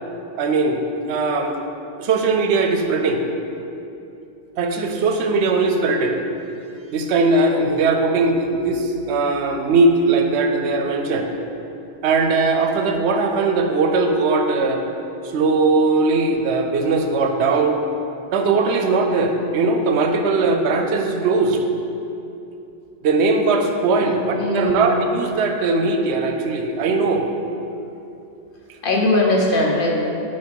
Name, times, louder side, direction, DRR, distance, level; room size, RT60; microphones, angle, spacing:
voice 1, 0.4-1.6 2.0-3.2 4.6-6.2 6.9-11.3 12.0-14.8 15.3-17.8 18.3-21.6 23.0-27.3, right 3 dB, 85° right, 4 dB, 0.9 m, -19 dB
voice 2, 24.1-24.8 28.8-29.9, left 2 dB, 55° left, -1 dB, 1.0 m, -20 dB
6.0 x 4.5 x 4.6 m, 2.8 s
omnidirectional pair, 1.1 m